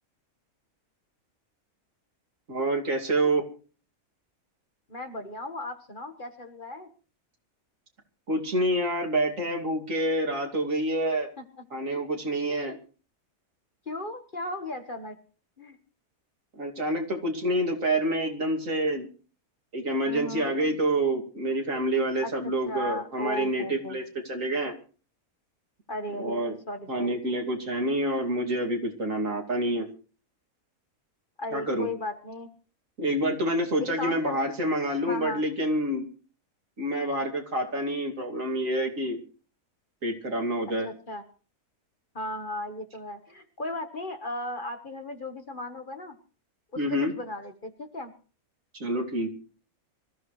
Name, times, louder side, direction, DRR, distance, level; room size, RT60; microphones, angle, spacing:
voice 1, 2.5-3.4 8.3-11.3 11.7-12.7 16.6-19.1 19.7-24.7 26.2-26.5 26.9-29.9 31.5-31.9 33.0-36.0 36.8-39.2 40.0-40.9 46.8-47.1 48.7-49.3, right 1 dB, 65° right, 2 dB, 3.0 m, -27 dB
voice 2, 4.9-6.9 12.5-12.8 13.8-15.2 15.6-15.8 20.0-20.6 22.2-22.3 22.7-23.9 25.9-27.2 31.4-32.5 34.0-34.4 35.0-35.4 40.8-41.2 42.1-46.2 47.0-48.1, left 1 dB, 35° left, 6 dB, 1.6 m, -36 dB
25.0 x 14.5 x 3.2 m, 0.38 s
omnidirectional pair, 1.5 m